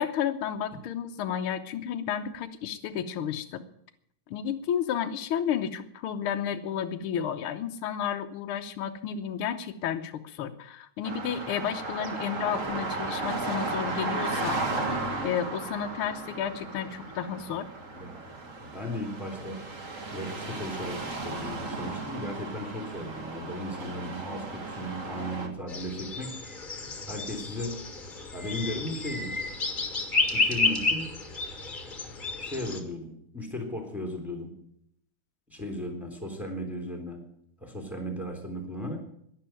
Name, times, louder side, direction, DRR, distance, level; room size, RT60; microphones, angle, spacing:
voice 1, 0.0-3.6 4.3-14.6 15.2-17.7, left 8 dB, 90° left, 6 dB, 1.2 m, -32 dB
sound 1, 11.0-25.5, right 3 dB, 35° right, 1.4 m, -35 dB
voice 2, 17.9-18.2 18.6-19.6 20.1-26.8 27.1-27.8 28.3-29.3 30.3-31.1 32.4-34.5 35.5-37.2 37.6-39.0, left 1 dB, ahead, 3 dB, 3.3 m, -36 dB
sound 2, 25.7-32.8, left 3 dB, 25° left, 1.1 m, -31 dB
11.5 x 11.0 x 9.1 m, 0.70 s
omnidirectional pair, 3.6 m